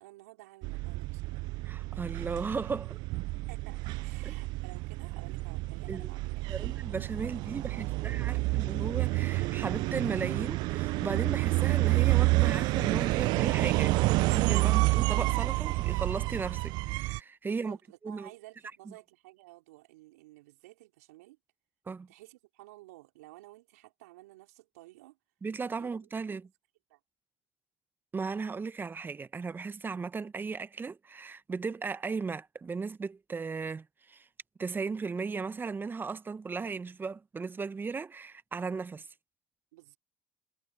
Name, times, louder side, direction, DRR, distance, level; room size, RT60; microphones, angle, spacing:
voice 1, 0.0-1.5 3.5-6.7 7.2-7.4 7.7-8.5 17.5-21.4 22.1-25.2 25.8-25.9 26.3-26.4 26.9-27.0 39.7-40.0, right 19 dB, 80° right, 4.0 m, -53 dB
sound 1, 0.6-17.2, right 22 dB, 60° right, 0.5 m, -29 dB
voice 2, 1.6-3.0 4.2-4.4 5.9-6.1 6.5-17.8 18.0-18.3 21.9-22.1 25.4-26.5 28.1-34.2 34.6-39.1, right 4 dB, 25° right, 1.3 m, -36 dB
hypercardioid pair, 65°, 8 cm